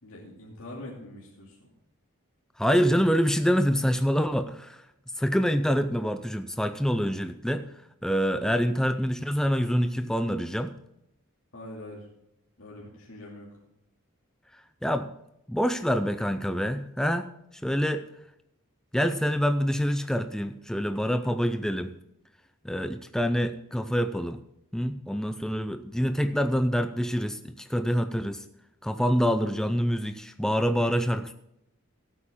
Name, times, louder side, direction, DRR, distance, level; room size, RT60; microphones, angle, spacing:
voice 1, 0.0-1.7 11.5-12.1 12.6-13.5, left 1 dB, 70° left, -4 dB, 2.5 m, -43 dB
voice 2, 2.6-4.8 5.2-7.7 8.0-10.7 14.5-15.1 15.5-17.3 17.6-18.1 18.9-21.9 22.6-24.4 24.7-28.4 28.8-31.3, equal, 5° left, 8 dB, 0.4 m, -26 dB
16.5 x 8.4 x 3.7 m, 0.82 s
head